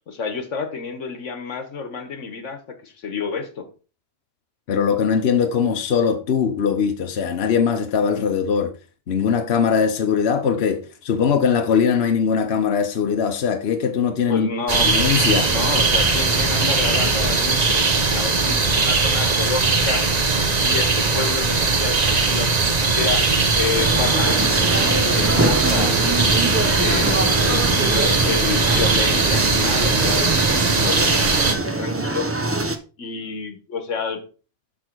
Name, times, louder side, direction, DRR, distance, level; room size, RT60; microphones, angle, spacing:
voice 1, 0.1-3.7 14.3-14.9 15.5-20.0 20.4-23.2 23.5-26.4 26.8-32.3 33.0-34.2, left 5 dB, 80° left, 1.5 m, -29 dB
voice 2, 4.7-8.7 9.1-14.5 14.7-15.5, left 6 dB, 60° left, 1.0 m, -21 dB
sound 1, 14.7-31.5, right 3 dB, 35° right, 0.9 m, -20 dB
sound 2, 23.7-32.8, right 2 dB, 15° right, 0.5 m, -24 dB
6.3 x 6.1 x 4.5 m
omnidirectional pair, 1.3 m